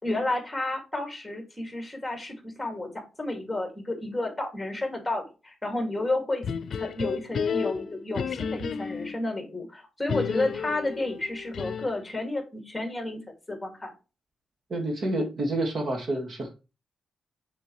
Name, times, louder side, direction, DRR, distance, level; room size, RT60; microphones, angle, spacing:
voice 1, 0.0-2.9 3.2-6.4 6.8-13.2 13.5-13.9, left 2 dB, 10° left, 2 dB, 2.5 m, -31 dB
sound 1, 6.4-9.2 10.1-12.1, left 6 dB, 60° left, 0.7 m, -32 dB
voice 2, 14.7-16.5, right 1 dB, 50° right, 2 dB, 2.0 m, -28 dB
6.7 x 5.6 x 3.2 m, 0.29 s
cardioid pair, 110°, 0 cm